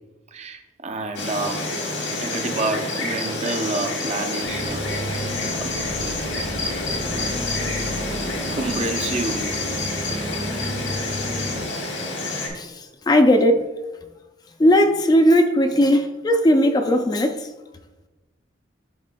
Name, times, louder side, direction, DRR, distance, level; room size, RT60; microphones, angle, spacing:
voice 1, 0.3-1.7 2.2-5.2 5.6-5.7 8.5-9.5 15.9-16.0, right 3 dB, 35° right, 0.5 m, -28 dB
Insect, 1.2-12.5, left 2 dB, 85° left, 1.4 m, -28 dB
sound 1, 4.4-11.6, equal, 65° right, 1.8 m, -32 dB
voice 2, 12.5-13.6 14.6-17.5, equal, 20° left, 0.3 m, -17 dB
10.5 x 4.1 x 2.2 m
head